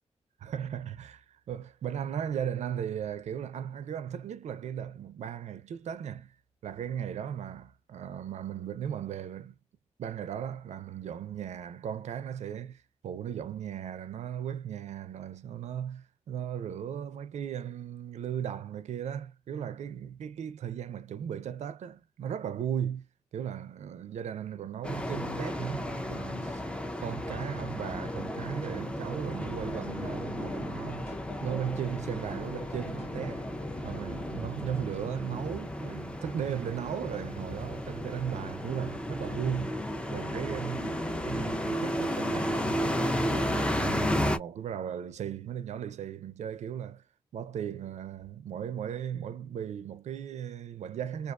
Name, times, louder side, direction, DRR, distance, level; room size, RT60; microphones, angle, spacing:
voice 1, 0.4-6.4 6.6-9.5 10.0-23.1 23.3-26.6 27.0-31.1 31.4-33.5 33.8-39.7 40.1-47.0 47.3-51.3, right 9 dB, 80° right, 0.4 m, -37 dB
sound 1, 24.8-44.4, equal, 10° left, 0.4 m, -33 dB
sound 2, 29.3-34.4, left 3 dB, 75° left, 0.8 m, -47 dB
2.3 x 2.3 x 2.3 m
wide cardioid pair, 120°, 12 cm